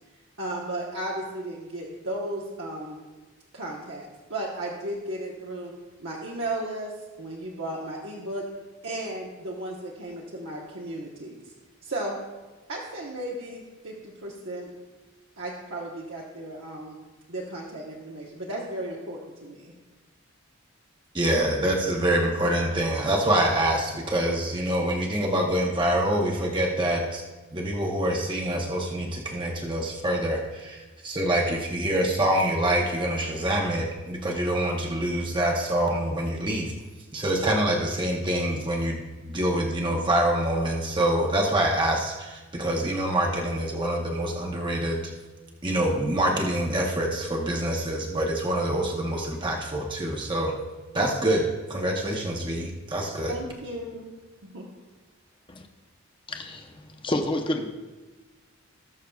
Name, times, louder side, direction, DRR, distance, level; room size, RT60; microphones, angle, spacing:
voice 1, 0.4-3.0 3.5-5.7 6.0-6.9 7.2-8.4 8.8-11.4 11.8-12.2 12.7-14.7 15.4-17.0 17.3-19.7 53.3-54.1 54.4-54.6, right 1 dB, 65° right, -4 dB, 1.1 m, -35 dB
voice 2, 21.1-27.2 27.5-36.7 37.1-45.0 45.6-50.5 50.9-53.4, right 1 dB, 20° right, -1 dB, 0.8 m, -26 dB
voice 3, 56.3-56.8 57.0-57.6, left 1 dB, 25° left, 4 dB, 0.7 m, -28 dB
19.0 x 6.5 x 2.3 m, 1.2 s
head